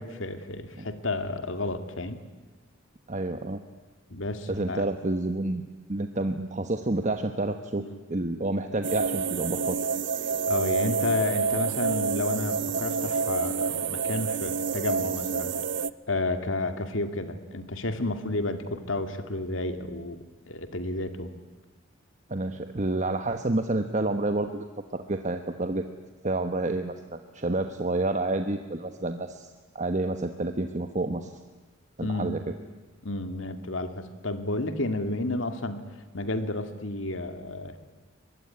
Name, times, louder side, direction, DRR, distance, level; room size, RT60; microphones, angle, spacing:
voice 1, 0.0-2.2 4.1-4.8 7.8-8.0 10.5-15.5 16.1-20.2 20.5-21.3 32.0-32.3 33.0-35.8 36.1-37.8, left 2 dB, 75° left, 8 dB, 2.4 m, -31 dB
voice 2, 3.1-3.6 4.5-5.6 5.9-7.8 8.1-9.8 22.3-25.8 26.2-31.3 32.0-32.4, right 2 dB, 40° right, 7 dB, 1.2 m, -29 dB
sound 1, 8.8-15.9, right 5 dB, 65° right, 0.7 m, -28 dB
23.5 x 21.0 x 9.9 m, 1.3 s
head